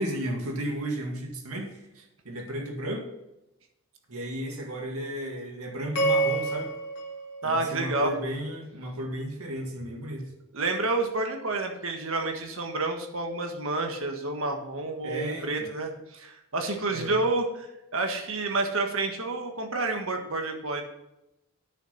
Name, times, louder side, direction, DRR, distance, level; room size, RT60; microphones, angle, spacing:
voice 1, 0.0-3.1 4.1-6.7 7.4-10.3 15.0-15.7 16.9-17.2, right 1 dB, 85° right, 1 dB, 2.1 m, -34 dB
sound 1, 6.0-8.3, right 2 dB, 50° left, 2.2 m, -29 dB
voice 2, 7.4-8.1 10.5-20.8, right 2 dB, 70° right, 3 dB, 1.6 m, -29 dB
9.3 x 6.7 x 5.8 m, 0.89 s
head